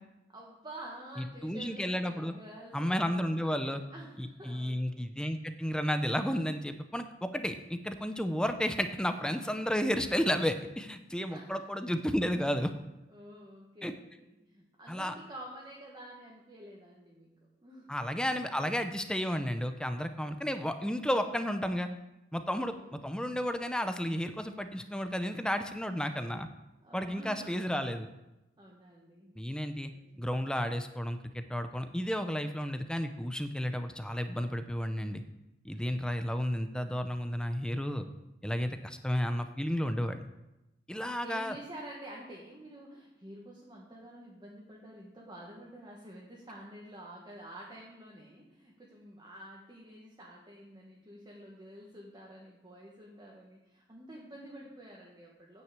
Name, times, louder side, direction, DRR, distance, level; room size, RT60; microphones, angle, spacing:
voice 1, 0.3-5.0 11.3-11.6 13.1-17.9 22.7-23.0 26.8-27.6 28.6-29.3 29.9-30.0 35.8-35.9 41.2-55.6, right 1 dB, 25° right, -3 dB, 1.6 m, -49 dB
voice 2, 1.4-2.3 2.7-3.8 4.2-12.7 13.8-13.9 14.9-15.1 17.9-21.9 22.3-22.8 23.0-26.5 26.9-28.1 29.4-29.9 30.2-35.2 35.6-38.1 38.4-40.3 40.9-41.6, equal, 5° left, 8 dB, 0.5 m, -32 dB
9.3 x 6.0 x 8.1 m, 0.95 s
head